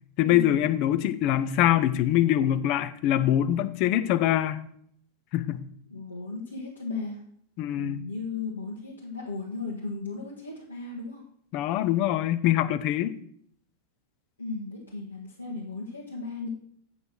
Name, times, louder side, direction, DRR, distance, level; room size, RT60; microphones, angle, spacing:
voice 1, 0.2-4.6 5.3-5.6 7.6-8.0 11.5-13.1, left 12 dB, 45° left, 13 dB, 0.6 m, -24 dB
voice 2, 5.9-7.2 7.8-11.2 14.4-16.5, left 3 dB, 80° left, -3 dB, 1.4 m, -35 dB
8.1 x 5.4 x 6.1 m, 0.65 s
figure-of-eight pair, 90°, 0 cm